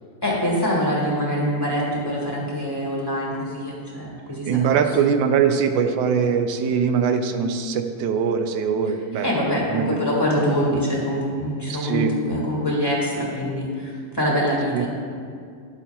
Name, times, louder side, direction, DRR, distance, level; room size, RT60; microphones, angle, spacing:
voice 1, 0.2-4.9 8.9-14.9, equal, 15° left, -5 dB, 1.6 m, -24 dB
voice 2, 4.5-9.3 9.7-9.8 11.7-12.1 14.7-14.9, right 7 dB, 90° right, 7 dB, 1.3 m, -22 dB
12.0 x 8.4 x 2.3 m, 2.2 s
omnidirectional pair, 2.0 m